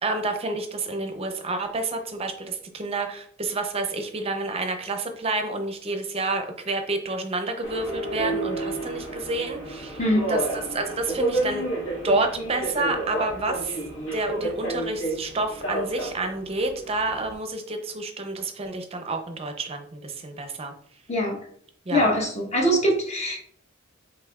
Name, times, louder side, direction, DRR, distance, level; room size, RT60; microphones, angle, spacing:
voice 1, 0.0-10.0 10.3-11.6 12.0-13.8 14.1-20.7 21.9-22.0, right 2 dB, 30° right, 6 dB, 0.6 m, -29 dB
Subway metro underground, 7.6-17.3, right 2 dB, 70° left, 1.5 m, -31 dB
voice 2, 21.9-23.5, equal, 30° left, -1 dB, 0.9 m, -23 dB
5.6 x 3.3 x 2.3 m, 0.62 s
head